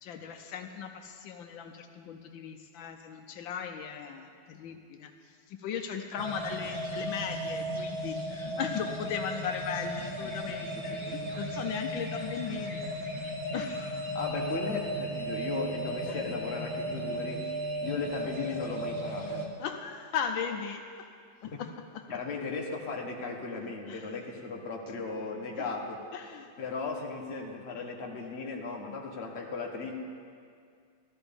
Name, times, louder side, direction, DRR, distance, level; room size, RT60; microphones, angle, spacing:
voice 1, 0.0-5.1 5.5-12.8 13.1-13.2 13.5-14.1 16.1-16.2 19.6-21.1 21.4-22.0 23.9-24.1 25.6-25.7 26.1-26.5, left 7 dB, 80° left, 5 dB, 1.4 m, -37 dB
sound 1, 6.2-19.5, right 1 dB, 40° right, 0.4 m, -35 dB
voice 2, 14.1-17.4 17.8-19.5 22.1-26.0 26.6-29.9, left 4 dB, 35° left, -1 dB, 1.4 m, -36 dB
14.0 x 13.5 x 3.5 m, 2.2 s
omnidirectional pair, 2.1 m